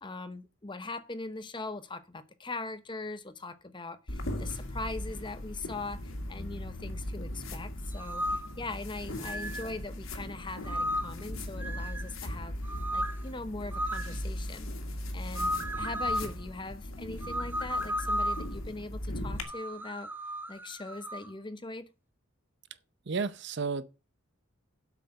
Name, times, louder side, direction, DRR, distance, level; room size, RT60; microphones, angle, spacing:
voice 1, 0.0-12.6 12.9-14.7 15.1-20.1 20.5-21.9, left 2 dB, 25° left, 0.8 m, -41 dB
sound 1, 4.1-19.4, left 1 dB, 75° left, 1.9 m, -38 dB
sound 2, 7.9-8.5 9.2-9.7 10.7-11.2 11.6-12.1 12.6-13.2 13.7-14.2 15.4-16.3 17.2-18.5 19.4-21.3, equal, 10° right, 0.8 m, -34 dB
voice 2, 23.1-23.8, right 4 dB, 55° right, 0.7 m, -32 dB
8.1 x 5.9 x 7.6 m
head